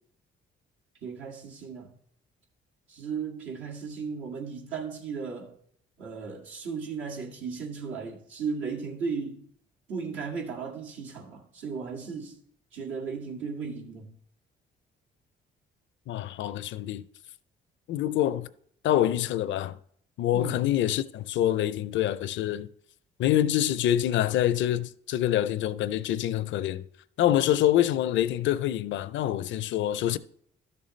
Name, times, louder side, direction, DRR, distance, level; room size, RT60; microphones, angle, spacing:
voice 1, 1.0-1.9 2.9-5.5 6.0-9.5 9.9-12.4 12.7-14.1 20.3-20.7, right 5 dB, 85° right, 2.1 m, -36 dB
voice 2, 16.1-17.0 17.9-18.5 18.8-19.8 20.2-22.7 23.2-26.8 27.2-30.2, left 12 dB, 70° left, 0.5 m, -26 dB
12.5 x 6.8 x 3.2 m
cardioid pair, 90°, 20 cm